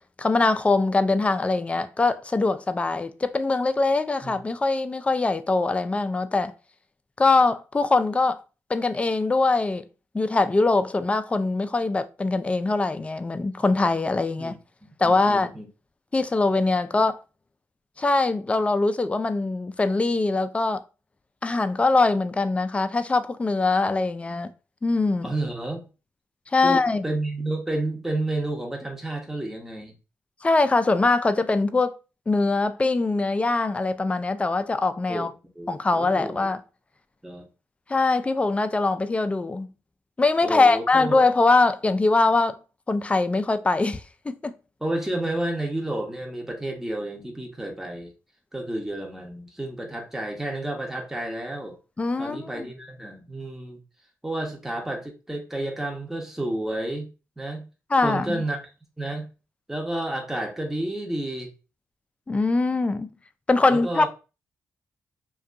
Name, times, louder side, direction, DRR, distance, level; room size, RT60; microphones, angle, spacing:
voice 1, 0.2-6.5 7.2-8.4 8.7-9.8 10.1-14.6 15.0-15.5 16.1-17.2 18.0-20.8 21.4-24.5 24.8-25.3 26.5-27.1 30.4-32.0 32.3-35.3 35.7-36.6 37.9-39.7 40.2-42.6 42.9-44.5 52.0-52.6 57.9-58.4 62.3-63.1 63.5-64.1, left 3 dB, 20° left, 0.3 m, -22 dB
voice 2, 15.0-15.7 25.2-25.8 26.6-29.9 35.1-35.3 35.5-36.5 37.2-37.5 40.4-41.1 44.8-48.1 48.5-51.8 52.2-53.8 54.2-57.1 57.4-57.7 58.0-58.6 59.0-59.3 59.7-61.5 63.7-64.1, right 1 dB, 5° right, 0.7 m, -31 dB
2.5 x 2.3 x 2.4 m
supercardioid pair, 60°, 6 cm